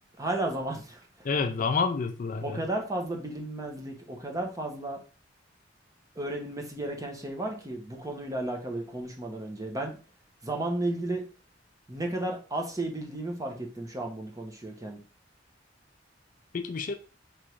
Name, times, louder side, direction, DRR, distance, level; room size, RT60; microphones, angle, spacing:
voice 1, 0.2-1.0 2.4-5.0 6.2-10.0 10.4-11.2 11.9-15.0, right 1 dB, 20° right, 0.9 m, -33 dB
voice 2, 1.2-2.6 16.5-16.9, left 4 dB, 45° left, 0.4 m, -28 dB
3.6 x 3.1 x 4.5 m
head